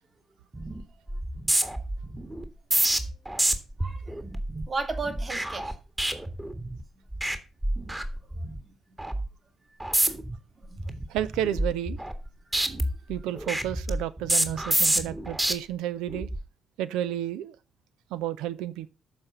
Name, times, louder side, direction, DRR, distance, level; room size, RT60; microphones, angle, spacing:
sound 1, 0.5-0.8 1.1-6.8 7.1-7.4 7.6-8.6 9.0-9.3 9.8-10.4 10.8-12.3 12.5-15.5 16.1-16.4, right 1 dB, 15° right, 1.7 m, -28 dB
voice 1, 3.8-4.2 4.7-5.8 8.3-8.7 9.9-10.1 10.7-10.8, right 3 dB, 35° right, 2.4 m, -35 dB
voice 2, 11.1-12.0 13.1-16.3 16.8-17.6 18.1-18.9, right 12 dB, 65° right, 0.5 m, -31 dB
13.5 x 5.1 x 6.6 m
figure-of-eight pair, 40°, 0 cm